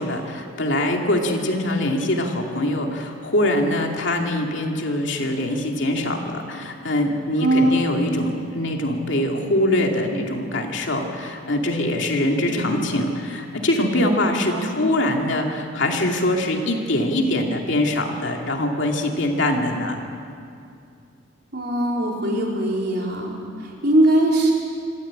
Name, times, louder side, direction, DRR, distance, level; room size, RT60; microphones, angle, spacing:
voice 1, 0.0-20.0, left 1 dB, 65° left, 1 dB, 2.6 m, -23 dB
voice 2, 7.4-7.7 12.5-12.8 14.5-14.8 21.5-24.5, right 1 dB, 55° right, -2 dB, 4.3 m, -21 dB
27.0 x 14.5 x 8.8 m, 2.4 s
head